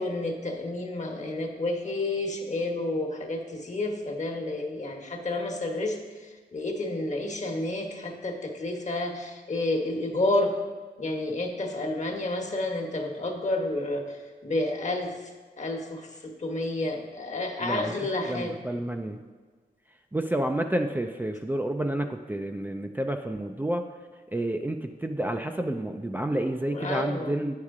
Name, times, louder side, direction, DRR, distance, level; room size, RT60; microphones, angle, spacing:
voice 1, 0.0-10.5 11.0-18.6 26.7-27.4, left 2 dB, 45° left, 2 dB, 1.2 m, -30 dB
voice 2, 17.6-19.2 20.1-23.8 24.3-27.5, right 1 dB, 10° right, 3 dB, 0.4 m, -30 dB
9.3 x 6.5 x 3.6 m, 1.5 s
wide cardioid pair, 80°, 17 cm